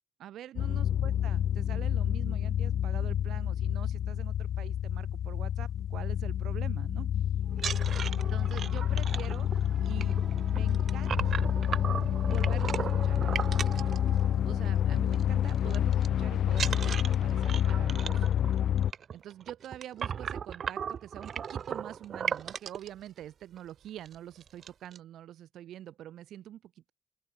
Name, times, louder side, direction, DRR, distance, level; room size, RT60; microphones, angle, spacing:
voice 1, 0.2-7.1 8.1-10.2 10.5-11.4 12.2-13.2 14.4-18.3 19.1-26.9, right 12 dB, 75° right, 3.9 m, -45 dB
sound 1, 0.6-18.9, left 10 dB, 70° left, 2.5 m, -28 dB
sound 2, 7.5-14.7 15.0-15.2 15.5-16.1 16.5-22.9 23.6-23.7 24.0-24.2 24.4-25.0, right 7 dB, 55° right, 2.5 m, -37 dB
open air
cardioid pair, 90°, 0 cm